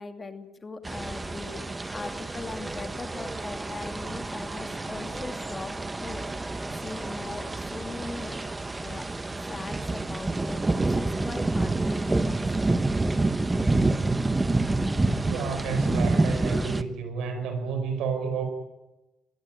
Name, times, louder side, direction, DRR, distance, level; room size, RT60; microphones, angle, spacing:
voice 1, 0.0-5.7 6.0-8.4 8.8-9.1 9.5-12.7 13.6-13.7, left 3 dB, 30° left, 7 dB, 2.5 m, -40 dB
sound 1, 0.8-16.8, right 2 dB, 20° right, 1.1 m, -28 dB
voice 2, 15.2-18.5, right 5 dB, 85° right, 7 dB, 5.2 m, -31 dB
22.0 x 16.0 x 9.2 m, 1.0 s
cardioid pair, 90°, 0 cm